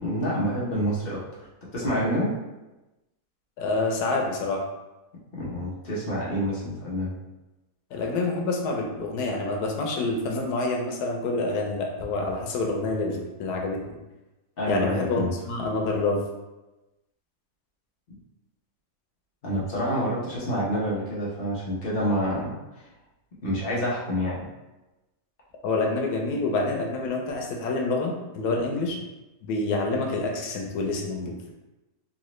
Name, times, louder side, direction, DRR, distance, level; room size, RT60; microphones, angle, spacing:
voice 1, 0.0-1.4 1.7-2.3 5.4-7.1 14.6-15.3 19.4-22.5 23.4-24.4, equal, 45° left, -7 dB, 1.0 m, -27 dB
voice 2, 3.6-4.6 7.9-14.0 14.7-16.2 25.6-29.0 29.4-31.5, left 3 dB, 90° left, 1 dB, 1.2 m, -27 dB
3.9 x 2.3 x 3.1 m, 1.0 s
omnidirectional pair, 1.7 m